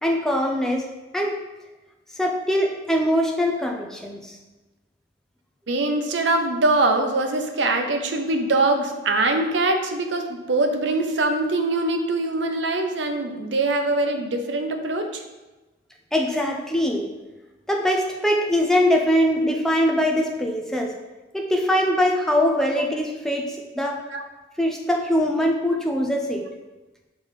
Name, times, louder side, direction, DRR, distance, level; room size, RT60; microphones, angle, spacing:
voice 1, 0.0-0.9 1.1-1.4 2.1-4.3 16.1-17.1 17.7-20.9 21.3-24.0 24.6-26.4, equal, 5° left, 1 dB, 0.6 m, -22 dB
voice 2, 5.7-15.2 24.1-24.2, right 2 dB, 75° right, 5 dB, 0.7 m, -23 dB
5.5 x 3.9 x 5.0 m, 1.1 s
head